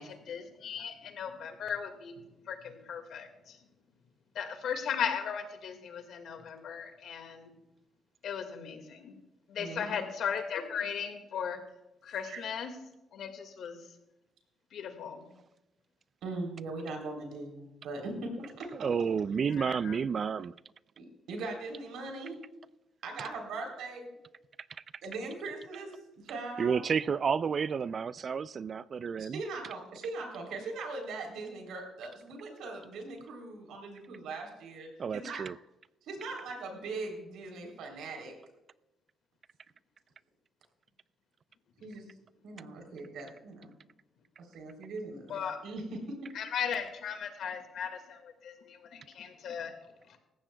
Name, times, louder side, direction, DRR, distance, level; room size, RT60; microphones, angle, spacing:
voice 1, 0.0-2.2 2.5-3.6 4.4-7.5 8.2-9.2 9.5-11.6 12.0-12.7 13.1-13.8 14.7-15.3 19.6-20.0 45.3-45.6 46.3-49.7 50.1-50.2, left 7 dB, 70° left, 6 dB, 1.8 m, -37 dB
voice 2, 9.6-10.0 12.2-12.5 16.2-18.9 21.0-22.4 23.0-24.0 25.0-26.9 29.2-35.4 36.0-38.3 41.8-42.1 42.4-43.7 44.4-46.3, right 3 dB, 80° right, 2 dB, 3.4 m, -40 dB
voice 3, 18.8-20.5 26.6-29.4 35.0-35.5, right 6 dB, 45° right, 18 dB, 0.4 m, -30 dB
19.0 x 15.0 x 2.3 m, 0.96 s
cardioid pair, 90°, 0 cm